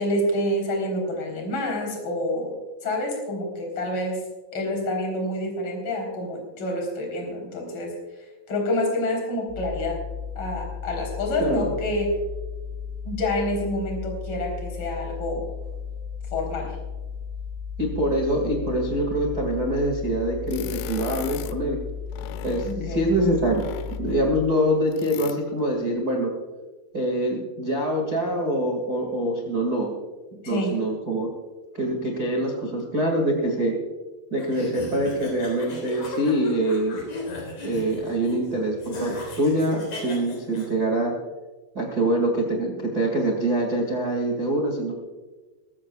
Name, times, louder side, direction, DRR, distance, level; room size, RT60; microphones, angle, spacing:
voice 1, 0.0-2.5 2.8-4.2 4.5-7.9 8.5-10.0 10.4-12.2 13.0-15.4 16.3-16.8 22.6-23.0 30.4-30.8, left 1 dB, 30° left, 0 dB, 4.1 m, -27 dB
sound 1, 9.5-24.4, left 6 dB, 65° left, 6.6 m, -35 dB
voice 2, 11.4-11.7 17.8-21.8 22.4-23.7 24.0-26.3 26.9-29.9 30.5-31.3 31.7-33.8 34.3-37.0 37.6-41.1 41.7-44.9, right 1 dB, 75° right, 0 dB, 0.8 m, -24 dB
sound 2, 20.5-21.6 22.1-22.8 23.4-24.2 24.9-25.4, left 12 dB, 85° left, 2.5 m, -37 dB
sound 3, 34.4-40.7, left 2 dB, 45° left, 4.9 m, -36 dB
22.0 x 15.0 x 2.4 m, 1.3 s
omnidirectional pair, 5.6 m